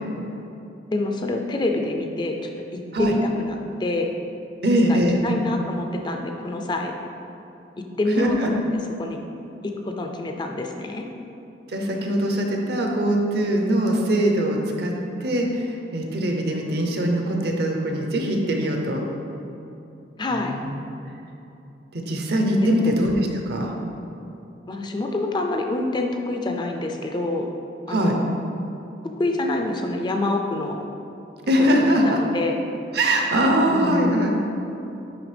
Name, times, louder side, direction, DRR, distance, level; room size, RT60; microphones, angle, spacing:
voice 1, 0.9-2.4 2.7-4.1 4.9-6.9 8.0-8.6 9.0-9.2 9.6-11.1 20.2-20.6 22.6-22.9 24.7-27.5 27.9-28.3 29.2-30.8 31.6-32.6 33.5-34.1, left 2 dB, 25° left, 3 dB, 0.4 m, -26 dB
voice 2, 4.6-5.3 8.2-8.5 11.7-14.9 15.2-19.0 20.4-20.7 21.9-23.7 27.9-28.2 31.5-32.2 32.9-34.4, right 1 dB, 65° right, 1 dB, 0.7 m, -22 dB
9.9 x 3.4 x 3.3 m, 2.8 s
head